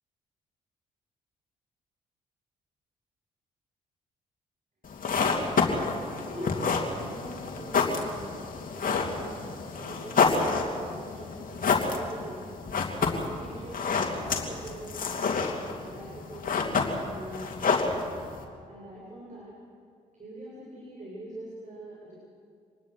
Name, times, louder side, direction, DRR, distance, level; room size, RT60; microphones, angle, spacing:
sound 1, 4.8-18.4, left 4 dB, 50° left, 3.1 m, -29 dB
voice 1, 5.4-8.1 8.7-9.4 9.8-12.5 13.1-15.4 15.8-18.1 18.7-19.5 20.1-22.1, equal, 40° right, -4 dB, 7.7 m, -43 dB
25.5 x 19.5 x 6.4 m, 2.2 s
hypercardioid pair, 50°, 18 cm